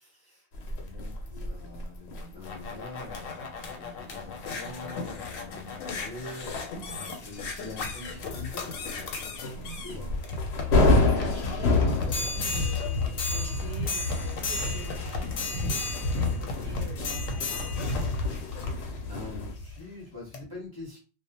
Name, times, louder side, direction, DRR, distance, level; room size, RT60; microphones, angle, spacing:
voice 1, 0.0-10.2 19.0-21.0, left 2 dB, 25° left, -3 dB, 0.6 m, -45 dB
sound 1, 0.5-19.5, left 3 dB, 65° left, 0.7 m, -31 dB
sound 2, 2.1-19.8 20.3-20.4, left 2 dB, 90° left, 1.0 m, -33 dB
voice 2, 6.8-7.2 9.5-9.9 10.8-18.0, right 4 dB, 65° right, 0 dB, 0.6 m, -45 dB
2.4 x 2.1 x 2.7 m, 0.36 s
omnidirectional pair, 1.3 m